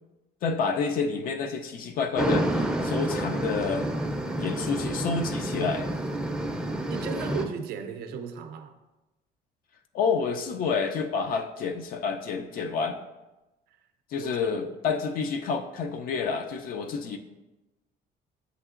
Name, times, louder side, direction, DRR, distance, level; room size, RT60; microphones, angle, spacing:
voice 1, 0.4-3.9 4.4-5.9 9.9-13.0 14.1-17.2, left 5 dB, 60° left, 6 dB, 0.4 m, -29 dB
sound 1, 2.2-7.5, right 1 dB, 5° right, 0.5 m, -29 dB
voice 2, 6.9-8.8 13.7-13.8 14.2-14.3, right 6 dB, 65° right, 7 dB, 0.4 m, -36 dB
7.8 x 2.8 x 2.4 m, 1.0 s
cardioid pair, 110°, 17 cm